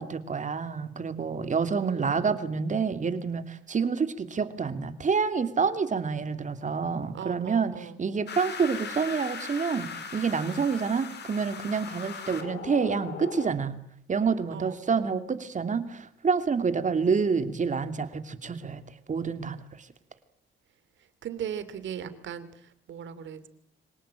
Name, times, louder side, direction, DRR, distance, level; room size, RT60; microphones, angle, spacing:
voice 1, 0.0-13.7 14.1-18.8 19.1-19.6, right 5 dB, 40° right, 10 dB, 2.8 m, -28 dB
voice 2, 1.7-2.4 7.1-8.0 14.5-15.1 21.2-23.5, right 9 dB, 70° right, 13 dB, 3.1 m, -39 dB
sound 1, 8.3-13.5, left 6 dB, 60° left, 4.6 m, -39 dB
25.5 x 18.5 x 9.0 m, 0.71 s
cardioid pair, 90°, 20 cm